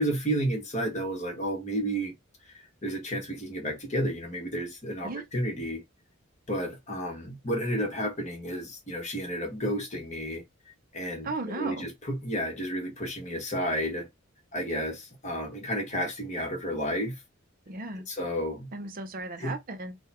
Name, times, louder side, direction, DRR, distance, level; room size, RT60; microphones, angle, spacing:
voice 1, 0.0-2.1 2.5-5.8 6.5-10.4 10.9-14.1 14.5-17.2 18.1-18.7 19.4-19.5, equal, 35° left, 1.4 m, -31 dB
voice 2, 11.2-11.9 17.7-18.1 18.7-20.0, right 3 dB, 45° right, 0.6 m, -35 dB
3.8 x 2.3 x 4.3 m
head